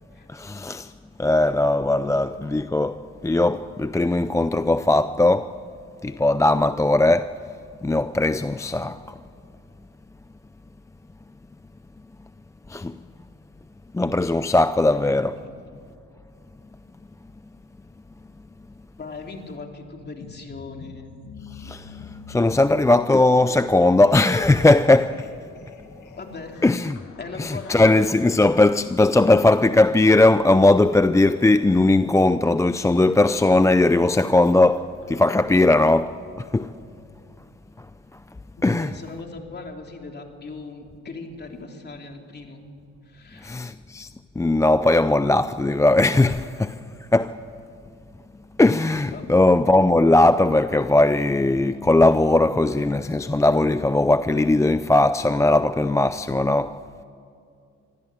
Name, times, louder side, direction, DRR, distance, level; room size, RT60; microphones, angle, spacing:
voice 1, 0.3-0.9 1.2-5.5 6.0-7.3 7.8-9.0 12.7-12.9 13.9-15.4 21.6-21.9 22.3-25.2 26.6-27.0 27.4-36.2 36.5-36.7 38.6-38.9 43.4-44.1 44.4-46.8 47.1-47.4 48.6-56.8, left 2 dB, 10° left, 0.4 m, -19 dB
voice 2, 19.0-21.1 26.2-26.6 27.2-28.2 38.5-42.6 43.0-43.7 49.1-49.4, left 3 dB, 35° left, 3.2 m, -39 dB
sound 1, 20.2-35.4, left 5 dB, 80° left, 2.0 m, -48 dB
24.5 x 15.5 x 9.0 m
cardioid pair, 90°, 30 cm